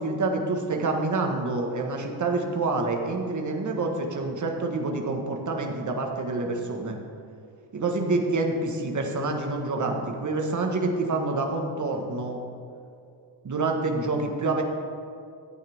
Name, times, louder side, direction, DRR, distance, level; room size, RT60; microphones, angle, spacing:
voice 1, 0.0-7.0 7.7-12.4 13.4-14.6, right 3 dB, 35° right, 2 dB, 1.5 m, -27 dB
14.0 x 8.8 x 3.6 m, 2.5 s
cardioid pair, 90°, 48 cm